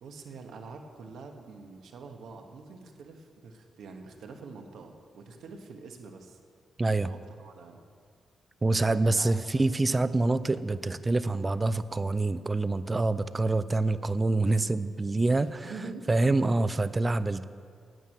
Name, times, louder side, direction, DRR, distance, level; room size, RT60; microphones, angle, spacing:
voice 1, 0.0-6.4 7.0-7.8 9.0-9.3 15.4-16.1, right 4 dB, 80° right, 4 dB, 1.2 m, -45 dB
voice 2, 6.8-7.1 8.6-15.7 16.1-17.4, right 2 dB, 20° right, 15 dB, 0.4 m, -26 dB
9.3 x 9.0 x 7.7 m, 2.2 s
cardioid pair, 130°, 0 cm